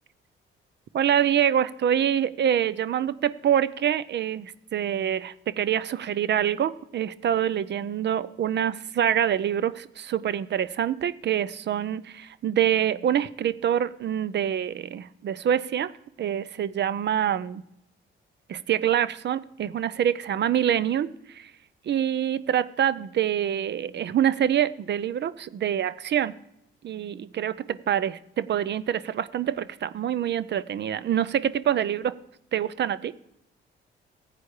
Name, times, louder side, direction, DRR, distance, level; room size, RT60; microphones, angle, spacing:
voice 1, 0.9-15.9 16.2-17.6 18.5-21.5 21.9-26.3 26.8-32.1 32.5-33.1, right 10 dB, 55° right, 16 dB, 0.6 m, -26 dB
14.5 x 8.5 x 4.8 m, 0.79 s
cardioid pair, 85°, 21 cm